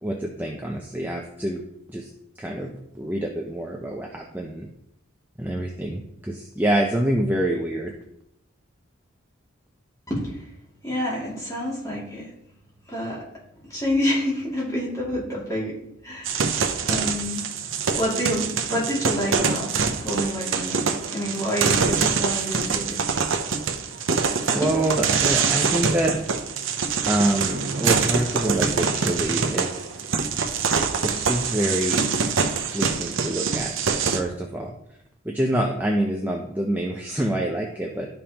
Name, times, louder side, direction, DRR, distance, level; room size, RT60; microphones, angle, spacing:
voice 1, 0.0-1.6 1.9-2.1 2.4-4.7 5.4-7.9 24.5-26.2 27.1-29.8 31.0-32.1 32.7-33.7 34.1-34.7 35.3-38.1, right 1 dB, 10° right, 0 dB, 0.6 m, -26 dB
voice 2, 10.1-10.4 10.8-12.3 12.9-13.2 13.7-15.8 16.0-16.5 16.9-17.5 17.9-23.2 24.6-24.7, equal, 15° left, -6 dB, 2.5 m, -28 dB
sound 1, 16.2-34.2, right 5 dB, 65° right, 0.7 m, -25 dB
11.5 x 5.3 x 2.9 m, 0.77 s
head